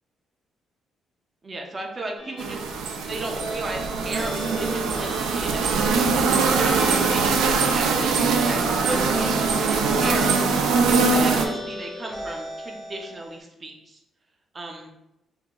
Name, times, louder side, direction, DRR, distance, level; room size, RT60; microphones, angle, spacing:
voice 1, 1.4-2.6 2.9-6.1 6.5-8.6 8.8-10.4 10.9-14.0 14.5-14.9, right 2 dB, 35° right, 2 dB, 0.6 m, -34 dB
sound 1, 2.2-13.4, left 1 dB, 10° right, 0.9 m, -37 dB
sound 2, 2.4-11.5, right 4 dB, 85° right, 0.4 m, -22 dB
3.7 x 2.3 x 2.9 m, 0.91 s
cardioid pair, 90°, 0 cm